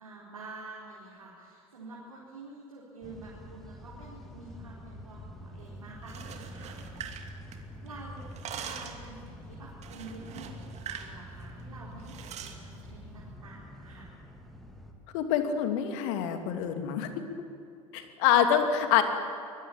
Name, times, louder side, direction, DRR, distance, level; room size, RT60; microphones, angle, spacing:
voice 1, 0.0-7.2 7.8-14.2, right 3 dB, 80° right, -5 dB, 4.2 m, -48 dB
sound 1, 3.0-14.9, equal, ahead, 3.6 m, -46 dB
sound 2, 6.0-7.9 8.2-9.1 9.8-11.1 11.4-11.6 12.1-12.6, right 8 dB, 40° right, 2.6 m, -42 dB
voice 2, 15.1-17.1 17.9-19.0, left 9 dB, 60° left, 6 dB, 2.7 m, -26 dB
24.5 x 20.5 x 8.9 m, 2.6 s
figure-of-eight pair, 75°, 18 cm